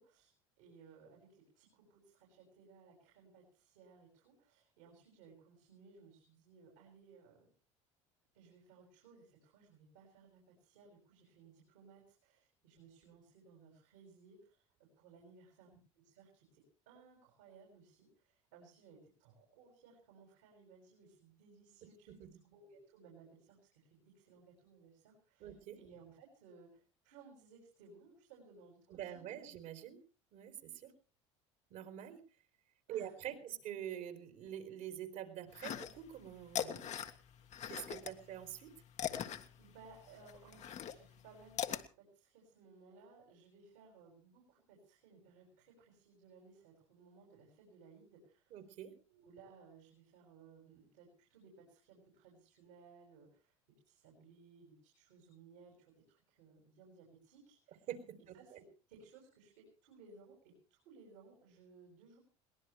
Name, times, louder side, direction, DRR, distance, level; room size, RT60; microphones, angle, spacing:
voice 1, 0.0-7.5 8.3-14.6 15.0-22.1 22.4-29.4 32.9-33.5 38.1-38.2 39.6-41.7 42.0-48.5 49.1-53.5 53.8-57.9 58.3-62.2, right 4 dB, 80° right, -1 dB, 6.6 m, -61 dB
voice 2, 22.1-22.4 25.4-25.8 28.9-30.0 30.3-30.9 31.7-32.2 32.9-36.9 37.7-38.7 48.5-49.0 57.9-58.6, right 10 dB, 65° right, 7 dB, 3.7 m, -46 dB
sound 1, 35.5-36.2 36.5-38.1 38.5-41.8, left 9 dB, 50° left, 1.6 m, -40 dB
22.5 x 18.5 x 3.3 m, 0.37 s
hypercardioid pair, 75°, 15 cm